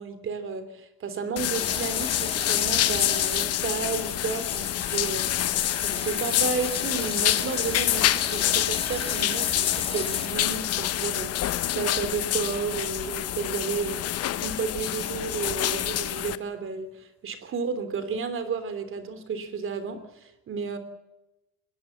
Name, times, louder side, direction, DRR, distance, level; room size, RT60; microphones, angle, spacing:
voice 1, 0.0-5.5 5.8-14.0 14.4-20.8, right 5 dB, 35° right, 11 dB, 3.2 m, -32 dB
sound 1, 1.4-16.4, left 12 dB, 40° left, 1.0 m, -27 dB
sound 2, 1.6-3.5 3.7-10.3, left 4 dB, 15° left, 3.0 m, -36 dB
21.0 x 18.0 x 8.1 m, 0.94 s
cardioid pair, 170°, 37 cm